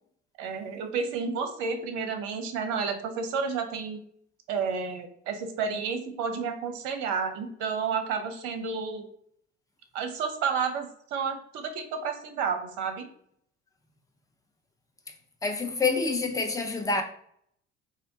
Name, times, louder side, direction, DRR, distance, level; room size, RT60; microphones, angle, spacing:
voice 1, 0.4-4.0 4.5-9.1 9.9-13.1, right 5 dB, 50° right, 0.6 m, -31 dB
voice 2, 15.4-17.0, left 4 dB, 10° left, 0.4 m, -27 dB
3.8 x 2.1 x 2.7 m
figure-of-eight pair, 55°, 36 cm